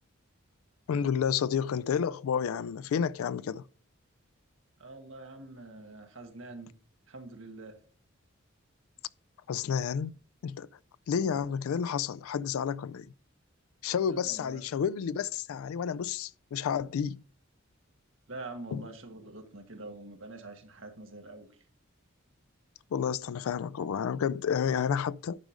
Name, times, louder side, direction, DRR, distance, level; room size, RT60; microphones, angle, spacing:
voice 1, 0.9-3.6 9.5-10.2 10.4-10.7 11.1-13.1 13.8-17.2 18.7-18.8 22.9-25.4, left 7 dB, 85° left, 0.3 m, -30 dB
voice 2, 4.8-6.7 7.1-7.8 11.1-11.5 14.1-14.6 18.3-21.5, right 2 dB, 65° right, 1.7 m, -45 dB
10.0 x 4.8 x 5.1 m
head